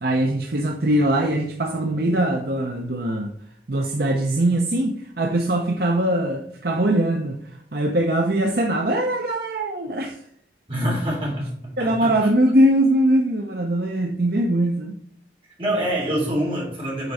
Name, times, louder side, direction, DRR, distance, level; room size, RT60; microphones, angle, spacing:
voice 1, 0.0-3.3 3.7-7.4 7.7-10.2 11.8-15.0, right 1 dB, 55° right, 0.7 m, -21 dB
voice 2, 10.7-12.3 15.6-17.1, equal, 30° right, 3.4 m, -26 dB
8.2 x 4.6 x 4.1 m
head